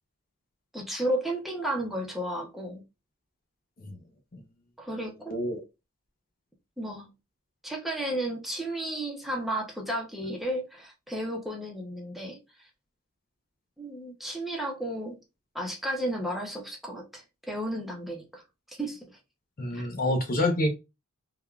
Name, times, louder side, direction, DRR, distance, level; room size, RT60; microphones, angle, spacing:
voice 1, 0.7-2.8 4.8-5.4 6.8-7.1 7.6-12.4 13.8-15.2 15.5-18.4 18.7-19.0 19.7-19.8, right 1 dB, ahead, 0.6 m, -33 dB
voice 2, 5.3-5.6 19.6-20.7, left 1 dB, 40° left, 0.6 m, -27 dB
3.4 x 2.2 x 2.3 m
head